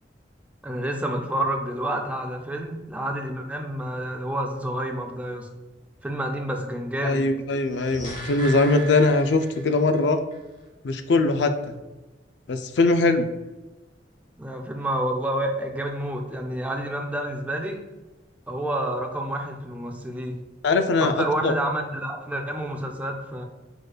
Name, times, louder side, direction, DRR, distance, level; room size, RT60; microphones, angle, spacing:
voice 1, 0.6-5.5 6.0-7.2 14.4-17.8 18.5-20.4 21.0-23.4, right 1 dB, 10° right, 3 dB, 0.4 m, -29 dB
voice 2, 7.0-10.2 10.8-11.7 12.5-13.3 20.6-21.5, left 3 dB, 70° left, 8 dB, 0.4 m, -21 dB
sound 1, 7.6-10.0 10.3-10.4, right 2 dB, 45° left, 1.3 m, -38 dB
4.7 x 4.4 x 2.3 m, 1.1 s
head